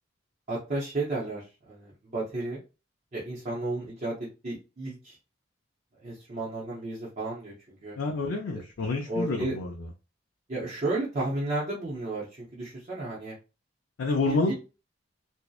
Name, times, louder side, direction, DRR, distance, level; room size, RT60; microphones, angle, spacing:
voice 1, 0.5-2.6 3.1-5.2 5.9-8.0 9.1-9.6 10.5-13.4 14.3-14.5, right 2 dB, 40° right, 0.6 m, -33 dB
voice 2, 8.0-9.7 14.0-14.5, left 3 dB, 70° left, 0.4 m, -28 dB
2.6 x 2.1 x 2.3 m
head